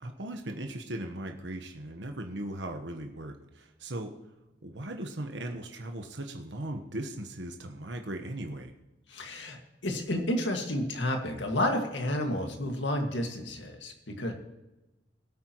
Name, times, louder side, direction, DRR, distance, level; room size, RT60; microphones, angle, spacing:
voice 1, 0.0-4.1 4.6-8.7, right 1 dB, 75° right, 4 dB, 1.2 m, -38 dB
voice 2, 9.1-9.6 9.8-14.3, left 1 dB, 85° left, 3 dB, 2.0 m, -31 dB
20.5 x 8.8 x 3.1 m, 0.99 s
head